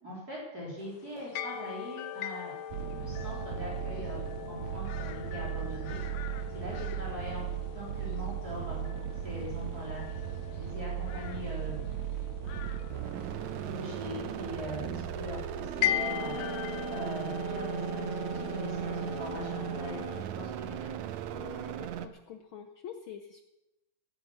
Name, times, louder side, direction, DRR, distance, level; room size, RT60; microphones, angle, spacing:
voice 1, 0.0-2.6 3.0-6.0 6.5-7.5 7.7-10.0 10.5-11.8 13.6-14.9 15.1-16.4 16.9-20.0 20.3-20.9, left 1 dB, 30° right, -4 dB, 4.2 m, -41 dB
sound 1, 0.8-20.2, left 11 dB, 70° left, 1.9 m, -40 dB
sound 2, 2.7-22.1, right 10 dB, 75° right, 2.0 m, -37 dB
voice 2, 21.3-23.4, left 8 dB, 90° left, 7 dB, 1.1 m, -46 dB
17.0 x 9.7 x 7.1 m, 0.96 s
omnidirectional pair, 3.4 m